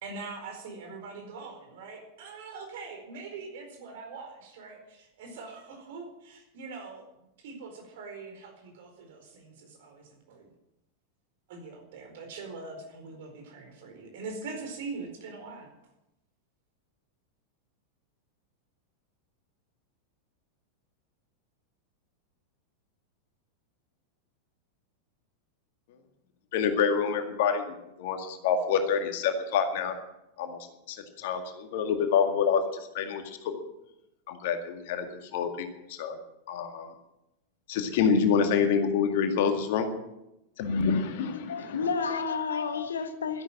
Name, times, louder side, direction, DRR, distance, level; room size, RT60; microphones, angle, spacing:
voice 1, 0.0-7.0 7.4-10.5 11.5-15.7, right 4 dB, 55° right, 4.5 m, -42 dB
voice 2, 26.5-29.9 30.4-30.6 30.9-33.6 34.3-35.1 35.3-36.2 36.5-36.9 37.7-39.9 40.6-41.9, left 6 dB, 50° left, 2.0 m, -27 dB
voice 3, 41.5-43.4, left 5 dB, 70° left, 1.4 m, -30 dB
13.0 x 11.0 x 7.5 m
figure-of-eight pair, 90°, 0 cm